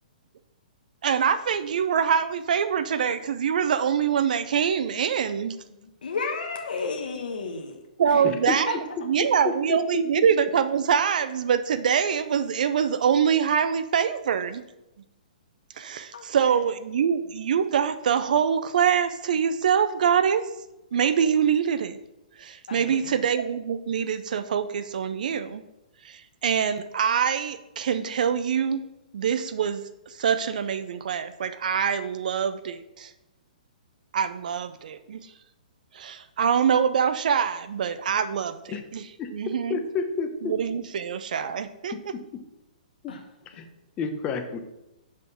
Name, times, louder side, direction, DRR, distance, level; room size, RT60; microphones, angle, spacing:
voice 1, 1.0-5.6 8.0-8.8 9.0-14.6 15.8-20.5 20.9-22.0 22.4-25.6 26.0-28.8 29.1-33.1 34.1-35.3 35.9-39.1 39.3-39.8 40.4-41.9, right 7 dB, 65° right, 12 dB, 0.4 m, -24 dB
voice 2, 5.8-7.8 8.1-8.2 8.7-8.8 16.1-16.5 22.7-23.2 43.1-43.2, left 4 dB, 85° left, 2 dB, 1.0 m, -33 dB
voice 3, 9.2-9.8 10.2-10.3 38.7-38.8 39.2-39.3 39.7-40.5 43.0-43.1 43.5-43.7 44.0-44.6, left 5 dB, 20° left, 6 dB, 0.7 m, -30 dB
6.5 x 3.6 x 5.6 m, 0.93 s
hypercardioid pair, 150°, 5 cm